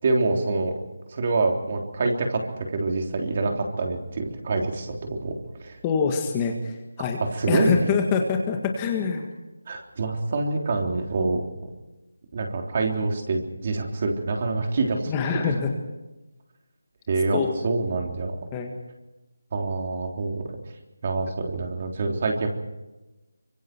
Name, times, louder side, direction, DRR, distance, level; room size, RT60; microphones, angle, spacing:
voice 1, 0.0-0.7 1.1-5.3 5.6-5.8 7.3-7.8 9.7-11.4 12.3-15.4 17.1-18.4 19.5-20.4 21.0-22.5, right 3 dB, 35° right, 2 dB, 3.5 m, -26 dB
voice 2, 5.8-7.2 7.5-9.3 15.1-15.7 17.3-17.6 18.5-18.7, left 6 dB, 15° left, 3 dB, 1.7 m, -25 dB
25.0 x 24.0 x 4.6 m, 1.0 s
figure-of-eight pair, 170°, 0 cm